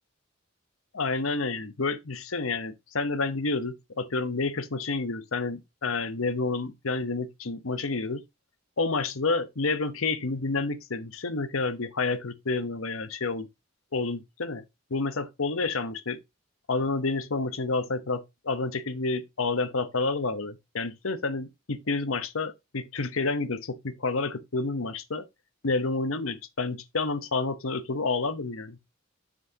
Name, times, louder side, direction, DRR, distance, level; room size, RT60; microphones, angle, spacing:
voice 1, 0.9-8.2 8.8-13.5 13.9-14.6 14.9-16.2 16.7-25.2 25.6-28.8, left 3 dB, 85° left, 1.0 m, -29 dB
7.6 x 6.3 x 2.9 m
head